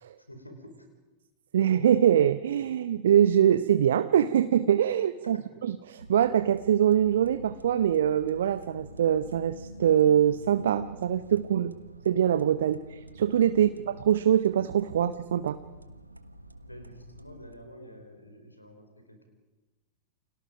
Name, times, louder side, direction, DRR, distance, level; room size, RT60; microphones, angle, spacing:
voice 1, 0.3-0.9 5.2-5.5 13.5-13.7 14.9-15.0 16.6-19.3, equal, 85° left, 6 dB, 4.7 m, -49 dB
voice 2, 1.5-11.7 12.0-13.7 14.1-15.6, right 10 dB, 60° right, 12 dB, 0.9 m, -23 dB
sound 1, 6.0-17.5, right 1 dB, 85° right, 1.4 m, -47 dB
30.0 x 27.0 x 5.2 m, 1.1 s
figure-of-eight pair, 90°, 0 cm